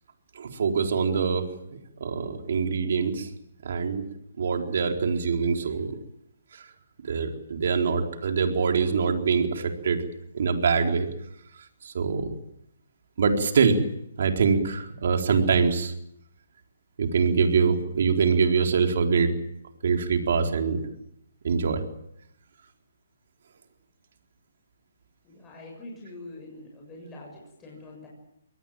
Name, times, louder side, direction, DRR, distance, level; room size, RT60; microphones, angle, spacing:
voice 1, 0.3-3.3 3.6-4.0 4.4-6.0 6.5-6.6 7.0-10.0 10.3-11.1 11.8-12.4 13.2-13.8 14.2-15.9 17.0-19.3 19.8-20.8 21.4-21.8, right 5 dB, 55° right, 4 dB, 4.1 m, -24 dB
voice 2, 25.2-28.1, left 2 dB, 10° left, -2 dB, 7.2 m, -44 dB
23.5 x 19.0 x 9.1 m, 0.77 s
hypercardioid pair, 160°, 0 cm